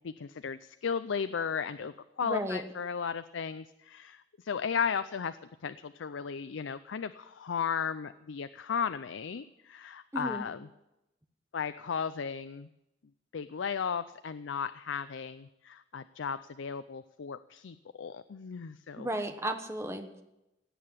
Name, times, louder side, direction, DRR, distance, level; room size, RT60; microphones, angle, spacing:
voice 1, 0.0-10.7 11.5-12.7 13.3-19.1, left 6 dB, 85° left, 13 dB, 0.5 m, -35 dB
voice 2, 2.2-2.6 10.1-10.4 19.0-20.2, right 1 dB, 15° right, 7 dB, 1.1 m, -34 dB
17.0 x 8.7 x 7.4 m, 0.92 s
head